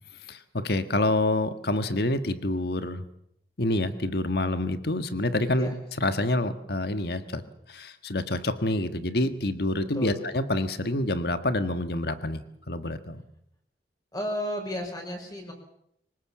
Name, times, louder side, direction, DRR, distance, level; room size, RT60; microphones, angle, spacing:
voice 1, 0.3-3.1 3.6-5.7 6.0-7.4 7.7-13.2, left 1 dB, 60° left, 10 dB, 1.5 m, -27 dB
voice 2, 14.1-15.5, left 1 dB, 20° left, 2 dB, 5.5 m, -33 dB
25.0 x 18.0 x 7.4 m, 0.74 s
head